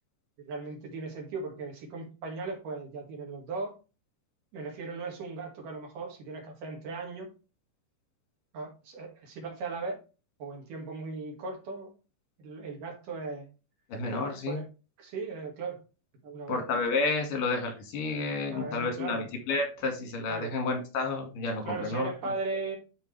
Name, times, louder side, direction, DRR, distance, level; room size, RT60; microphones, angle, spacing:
voice 1, 0.4-3.7 4.5-7.3 8.5-10.0 10.4-11.9 12.4-13.5 14.1-14.7 15.0-15.8 16.2-16.6 18.5-19.3 20.3-20.6 21.6-22.8, right 4 dB, 85° right, 1 dB, 3.8 m, -37 dB
voice 2, 13.9-14.6 16.5-22.1, left 3 dB, 90° left, 3 dB, 3.7 m, -30 dB
12.0 x 4.5 x 3.3 m, 0.32 s
omnidirectional pair, 3.7 m